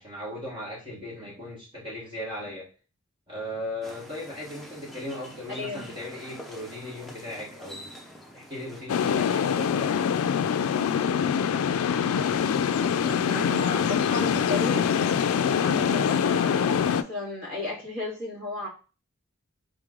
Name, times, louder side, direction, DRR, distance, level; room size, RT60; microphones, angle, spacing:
voice 1, 0.0-2.7 3.3-7.9 8.3-10.0, left 1 dB, 25° right, 1.3 m, -37 dB
sound 1, 3.8-8.9, equal, ahead, 0.5 m, -45 dB
voice 2, 5.5-5.9 12.8-14.9 15.6-18.7, left 2 dB, 45° right, 1.7 m, -34 dB
sound 2, 8.9-17.0, left 7 dB, 80° left, 0.3 m, -24 dB
3.7 x 3.1 x 3.7 m
head